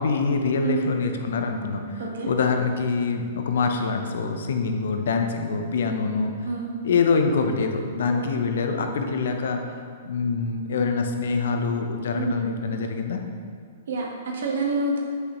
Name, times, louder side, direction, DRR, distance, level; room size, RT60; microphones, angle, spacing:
voice 1, 0.0-6.3 6.8-9.6 10.0-13.2, left 4 dB, 70° left, 5 dB, 0.7 m, -25 dB
voice 2, 13.9-15.0, right 3 dB, 70° right, -1 dB, 1.3 m, -27 dB
8.0 x 5.4 x 3.0 m, 2.2 s
hypercardioid pair, 120°, 0 cm